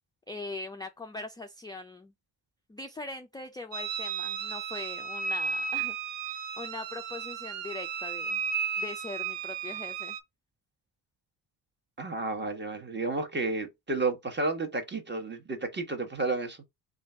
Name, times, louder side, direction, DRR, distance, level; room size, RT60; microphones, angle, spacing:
voice 1, 0.3-2.1 2.7-6.0 6.2-8.4 8.8-10.2, left 2 dB, 10° left, 0.3 m, -41 dB
sound 1, 3.7-10.2, right 6 dB, 70° right, 0.7 m, -34 dB
voice 2, 12.0-16.6, right 3 dB, 25° right, 1.1 m, -31 dB
3.1 x 2.5 x 4.3 m
supercardioid pair, 65°, 45 cm